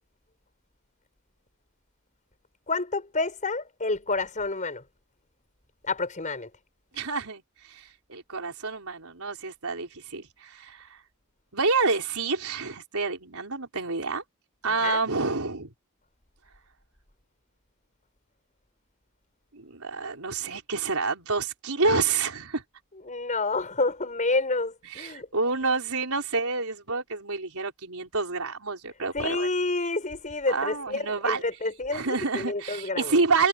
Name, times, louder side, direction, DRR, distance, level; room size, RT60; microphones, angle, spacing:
voice 1, 2.7-4.8 5.8-6.5 14.7-15.0 23.1-25.3 29.1-33.2, left 3 dB, 35° left, 5.5 m, -29 dB
voice 2, 6.9-11.0 11.5-14.2 14.6-15.7 19.5-22.6 24.9-29.5 30.5-31.4 31.9-33.5, right 4 dB, 80° right, 4.2 m, -28 dB
head